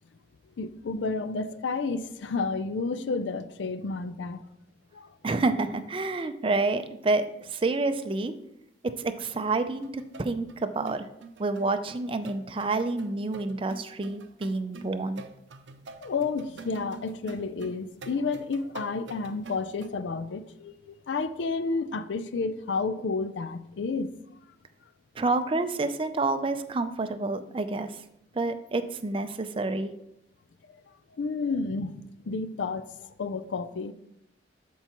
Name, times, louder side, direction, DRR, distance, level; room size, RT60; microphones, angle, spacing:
voice 1, 0.6-4.4 4.9-5.1 16.0-24.1 31.2-32.0 32.3-33.9, left 4 dB, 85° left, 0.5 m, -31 dB
voice 2, 5.2-8.3 9.0-9.9 10.2-11.1 11.4-15.2 25.2-27.9 28.3-29.9, right 3 dB, 30° right, 0.4 m, -28 dB
sound 1, 9.5-9.6 9.8-19.9, right 4 dB, 90° right, 0.6 m, -46 dB
12.5 x 4.6 x 3.0 m
head